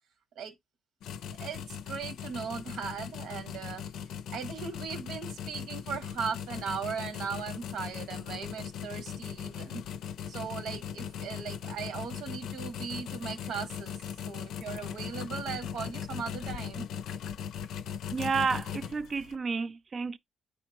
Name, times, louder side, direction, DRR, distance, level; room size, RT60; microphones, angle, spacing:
sound 1, 1.0-19.4, left 8 dB, 90° left, 0.5 m, -39 dB
voice 1, 1.4-3.8 4.3-9.8 10.3-14.0 14.2-16.9, right 6 dB, 85° right, 1.6 m, -38 dB
voice 2, 18.1-20.2, right 5 dB, 35° right, 0.4 m, -31 dB
9.2 x 3.6 x 2.9 m
cardioid pair, 140°, 0 cm